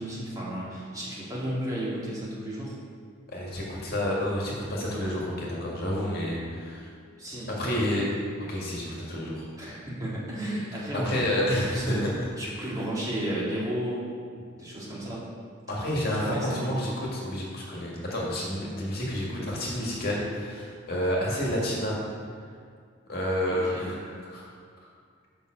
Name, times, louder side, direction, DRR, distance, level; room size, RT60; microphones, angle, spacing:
voice 1, 0.0-2.8 7.2-7.5 9.6-12.0 12.4-14.1 14.6-15.3 16.1-16.8 21.1-21.2 23.5-23.9, right 1 dB, 20° right, -7 dB, 2.1 m, -33 dB
voice 2, 3.3-6.9 7.5-8.1 8.5-9.5 10.9-12.1 15.7-22.0 23.1-24.5, equal, 55° left, -4 dB, 1.9 m, -29 dB
7.1 x 5.5 x 6.3 m, 2.1 s
head